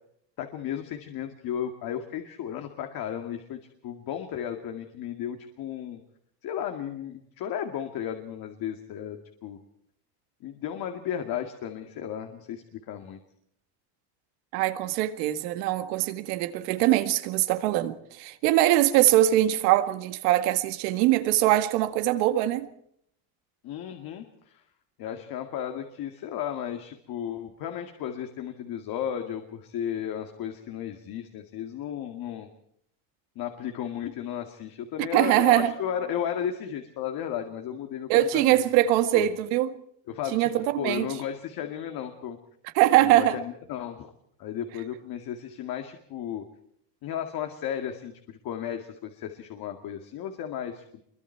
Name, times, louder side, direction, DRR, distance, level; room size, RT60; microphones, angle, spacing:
voice 1, 0.4-6.0 6.4-9.6 10.4-13.2 23.6-24.6 25.0-32.5 33.4-38.6 39.1-39.3 40.1-40.5 40.8-42.4 43.0-44.1 44.4-46.4 47.0-51.0, left 9 dB, 50° left, 2.2 m, -34 dB
voice 2, 14.5-22.7 35.1-35.7 38.1-39.7 40.3-41.1 42.8-43.4, right 14 dB, 90° right, 1.9 m, -22 dB
26.5 x 23.5 x 4.6 m
cardioid pair, 145°, 45 cm